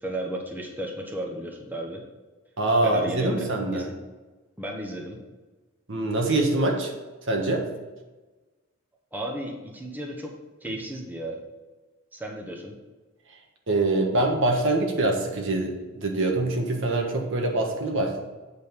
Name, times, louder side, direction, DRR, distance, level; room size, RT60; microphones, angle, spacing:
voice 1, 0.0-2.0 2.8-3.9 4.6-5.2 9.1-10.3 10.6-11.4 12.1-12.8, right 1 dB, 10° right, 0 dB, 1.1 m, -34 dB
voice 2, 2.6-3.8 5.9-6.9 7.3-7.7 13.7-18.2, right 2 dB, 65° right, 2 dB, 1.4 m, -24 dB
8.3 x 5.1 x 5.3 m, 1.2 s
head